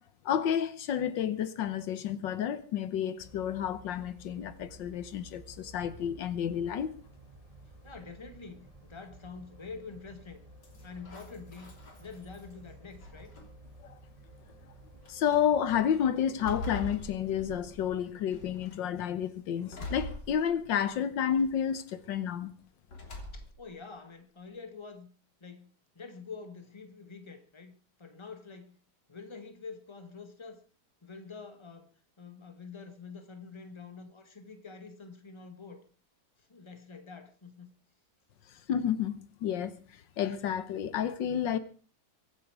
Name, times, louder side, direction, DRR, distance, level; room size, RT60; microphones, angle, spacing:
voice 1, 0.2-6.9 13.8-13.9 15.1-22.5 38.7-39.1 39.4-41.6, left 9 dB, 85° left, 1.7 m, -30 dB
sound 1, 3.2-18.0, right 2 dB, 20° right, 2.4 m, -54 dB
voice 2, 7.8-10.4 10.8-11.7 12.0-13.4 23.3-25.1 25.4-27.7 28.0-28.8 29.1-30.6 31.0-31.9 32.2-35.8 36.4-37.7, left 4 dB, 15° left, 1.6 m, -46 dB
sound 2, 10.6-12.5 13.0-13.7 14.5-14.6 15.0-15.4 15.9-17.9 18.3-18.8 19.7-20.9 21.3-21.9 22.9-23.7, left 1 dB, 65° left, 3.6 m, -43 dB
23.0 x 9.2 x 4.8 m
omnidirectional pair, 1.9 m